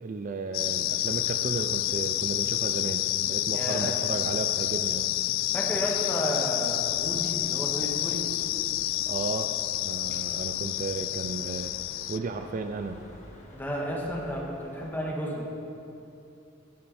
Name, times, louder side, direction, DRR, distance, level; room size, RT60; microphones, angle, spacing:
voice 1, 0.0-5.2 9.1-9.5 9.8-11.8 12.1-13.0, right 3 dB, 40° right, 7 dB, 0.4 m, -34 dB
sound 1, 0.5-12.2, left 15 dB, 75° left, 0.3 m, -29 dB
voice 2, 3.5-4.0 5.5-8.3 13.5-15.5, equal, 10° left, -3 dB, 1.6 m, -32 dB
sound 2, 6.7-14.9, left 1 dB, 35° left, 1.6 m, -51 dB
11.5 x 11.0 x 4.2 m, 2.7 s
head